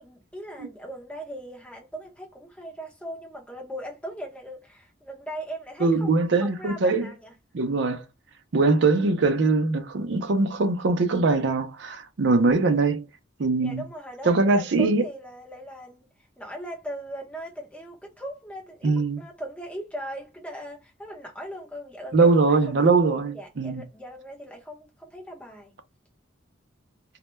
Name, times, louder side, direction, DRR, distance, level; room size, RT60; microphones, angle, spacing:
voice 1, 0.0-7.3 13.6-22.9 23.3-25.7, equal, 5° left, 0.7 m, -39 dB
voice 2, 5.8-7.1 7.5-8.0 8.5-13.1 13.4-13.8 14.2-15.0 18.8-19.2 22.1-23.8, right 3 dB, 60° right, 0.5 m, -22 dB
2.1 x 2.1 x 3.0 m
head